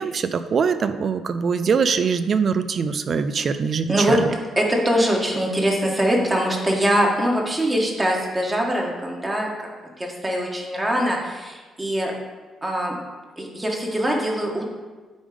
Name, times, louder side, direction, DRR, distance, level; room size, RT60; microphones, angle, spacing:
voice 1, 0.0-4.3, right 6 dB, 50° right, 11 dB, 0.4 m, -23 dB
voice 2, 3.9-4.2 4.6-9.5 10.0-12.1 12.6-12.9 13.4-14.7, equal, 20° right, -1 dB, 1.5 m, -22 dB
8.7 x 3.6 x 5.1 m, 1.3 s
cardioid pair, 90°, 0 cm